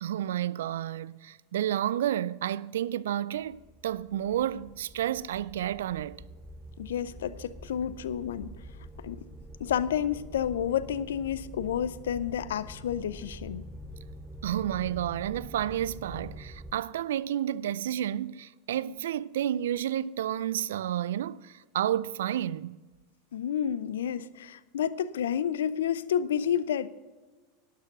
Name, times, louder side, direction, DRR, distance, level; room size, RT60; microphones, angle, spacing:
voice 1, 0.0-6.2 14.4-22.8, right 11 dB, 75° right, 0.3 m, -31 dB
sound 1, 3.3-16.7, equal, 10° right, 1.0 m, -46 dB
voice 2, 6.8-8.5 9.0-9.3 9.6-13.6 23.3-26.9, left 9 dB, 80° left, 0.4 m, -30 dB
12.0 x 6.8 x 6.6 m
hypercardioid pair, 95°, 0 cm